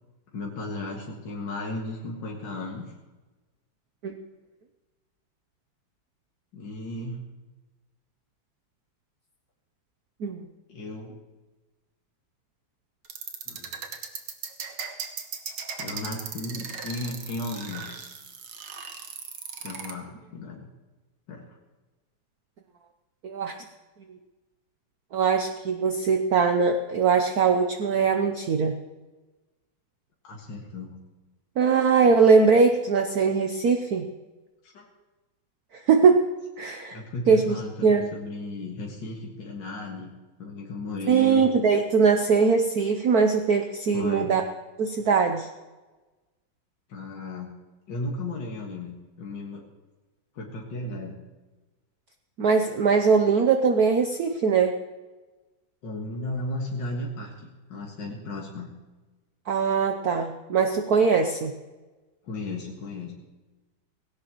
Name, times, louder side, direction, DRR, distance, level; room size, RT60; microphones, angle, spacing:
voice 1, 0.3-2.9 6.5-7.3 10.7-11.2 13.5-13.9 15.8-17.9 19.6-20.7 21.3-21.6 30.2-31.0 34.6-34.9 36.9-40.1 40.4-41.5 43.9-44.3 46.9-47.5 47.9-49.7 50.3-51.2 55.8-58.7 62.2-63.1, left 2 dB, 60° left, -2 dB, 2.5 m, -35 dB
sound 1, 13.0-19.9, right 6 dB, 90° right, 2.2 m, -37 dB
voice 2, 23.2-23.5 25.1-28.7 31.6-34.1 35.9-36.2 36.6-37.0 37.3-37.6 37.8-38.1 41.1-44.4 44.8-45.5 52.4-54.7 59.5-61.5, right 5 dB, 55° right, 5 dB, 1.2 m, -21 dB
18.5 x 17.0 x 3.1 m, 1.2 s
omnidirectional pair, 2.2 m